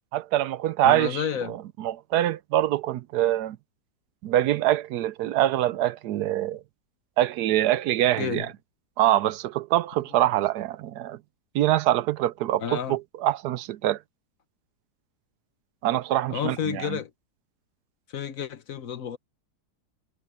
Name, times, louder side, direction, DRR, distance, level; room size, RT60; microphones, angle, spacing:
voice 1, 0.1-3.6 4.2-6.6 7.2-8.5 9.0-11.2 11.5-14.0 15.8-17.0, right 13 dB, 75° right, 1.1 m, -24 dB
voice 2, 0.8-1.6 8.2-8.5 12.6-13.0 16.3-17.1 18.1-19.2, left 8 dB, 60° left, 1.3 m, -30 dB
omnidirectional pair, 1.8 m